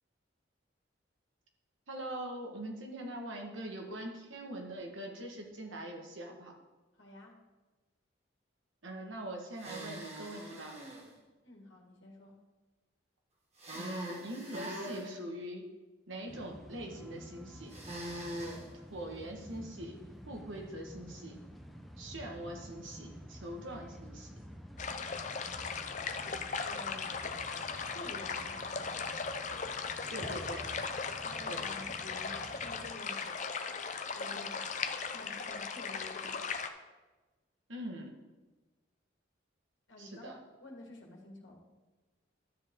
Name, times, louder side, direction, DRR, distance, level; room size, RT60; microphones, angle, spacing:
voice 1, 1.9-6.5 8.8-10.8 13.7-15.7 16.1-17.7 18.9-20.0 20.3-21.4 22.0-24.4 30.1-30.7 31.5-31.7 37.7-38.1 40.0-40.4, right 1 dB, 80° right, 1 dB, 1.7 m, -43 dB
voice 2, 6.9-7.3 11.4-12.3 26.6-27.4 27.7-28.9 31.2-33.3 33.6-33.7 34.1-34.7 35.1-36.3 39.9-41.6, left 1 dB, 80° left, 0 dB, 1.9 m, -50 dB
sound 1, 9.5-11.0 13.6-15.1 17.7-18.6, equal, 35° right, 1.9 m, -42 dB
sound 2, 16.3-33.0, equal, ahead, 0.6 m, -50 dB
sound 3, 24.8-36.7, left 5 dB, 40° left, 0.6 m, -38 dB
12.0 x 7.4 x 3.8 m, 1.2 s
head